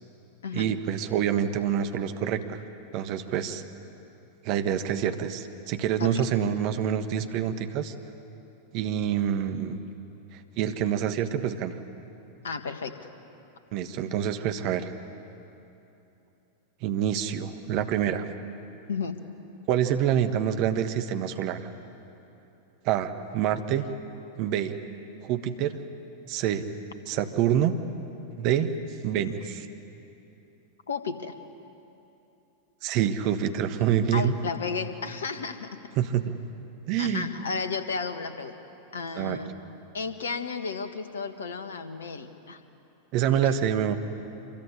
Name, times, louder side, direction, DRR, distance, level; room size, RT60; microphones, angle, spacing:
voice 1, 0.5-2.6 2.9-3.6 4.4-7.9 8.7-9.8 10.3-11.8 13.7-14.9 16.8-18.3 19.7-21.7 22.8-23.8 24.4-24.8 25.2-25.8 26.3-26.6 27.1-27.7 28.4-28.7 29.0-29.7 32.8-34.3 36.0-36.3 36.9-37.3 39.2-39.4 43.1-44.0, right 9 dB, 45° right, 7 dB, 1.4 m, -26 dB
voice 2, 12.4-13.0 18.9-19.2 30.9-31.3 34.1-35.8 37.0-38.5 38.9-39.5 39.9-42.6 43.4-43.5, left 5 dB, 65° left, 10 dB, 1.6 m, -33 dB
25.5 x 22.5 x 9.9 m, 2.9 s
figure-of-eight pair, 90°, 0 cm